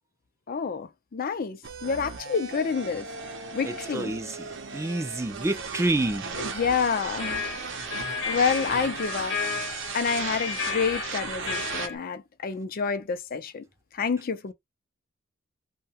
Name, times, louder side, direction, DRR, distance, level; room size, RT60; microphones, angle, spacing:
voice 1, 0.5-3.1 3.5-4.1 6.4-7.4 8.3-9.4 9.9-13.6 14.0-14.5, left 5 dB, 45° left, 0.5 m, -28 dB
sound 1, 1.6-11.9, right 5 dB, 65° right, 0.7 m, -36 dB
voice 2, 3.6-6.2, right 2 dB, 15° right, 0.4 m, -28 dB
sound 2, 6.8-11.9, left 6 dB, 65° left, 0.9 m, -34 dB
2.7 x 2.2 x 2.8 m
head